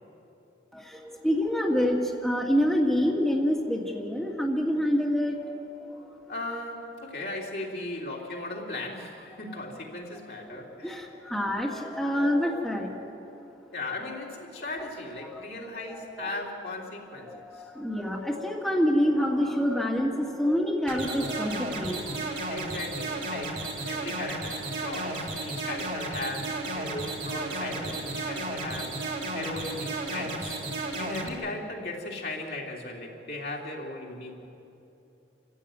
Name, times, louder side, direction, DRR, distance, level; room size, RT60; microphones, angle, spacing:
voice 1, 0.7-6.2 10.5-10.6 10.8-12.9 15.3-15.4 15.9-16.3 17.3-22.2, equal, ahead, -3 dB, 1.9 m, -27 dB
voice 2, 6.3-11.0 13.7-17.7 22.5-23.6 23.9-30.6 31.0-34.5, left 2 dB, 60° left, -1 dB, 3.3 m, -37 dB
sound 1, 20.9-31.3, right 2 dB, 45° right, 3.7 m, -33 dB
28.0 x 14.5 x 9.3 m, 2.9 s
head